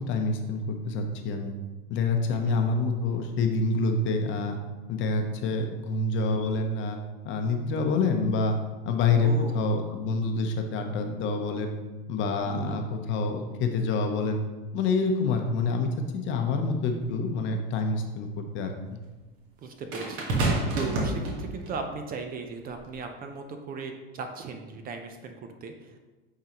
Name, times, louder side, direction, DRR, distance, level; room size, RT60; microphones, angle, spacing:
voice 1, 0.0-1.5 1.9-4.6 4.9-7.0 7.2-8.6 8.8-11.7 12.1-14.4 14.7-19.0, left 3 dB, 40° left, 4 dB, 0.8 m, -27 dB
voice 2, 2.3-2.6 9.2-9.7 12.5-12.8 19.6-26.0, right 4 dB, 30° right, 5 dB, 0.6 m, -38 dB
sound 1, 17.0-17.1 19.9-21.8 22.7-22.9, right 2 dB, 50° right, 1.5 m, -28 dB
8.6 x 3.9 x 3.0 m, 1.2 s
supercardioid pair, 115°, 30 cm